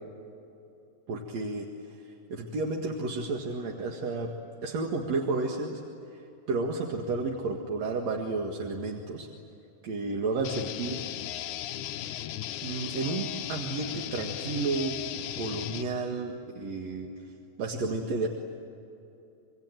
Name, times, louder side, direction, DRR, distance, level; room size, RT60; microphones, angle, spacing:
voice 1, 1.1-4.3 4.6-5.8 6.1-6.2 6.5-9.3 9.8-11.0 12.1-12.3 12.6-15.0 15.3-17.1 17.6-18.3, right 3 dB, 55° right, 1 dB, 2.7 m, -32 dB
sound 1, 10.4-15.8, left 12 dB, 75° left, 2.0 m, -36 dB
27.0 x 23.5 x 9.1 m, 2.8 s
omnidirectional pair, 4.1 m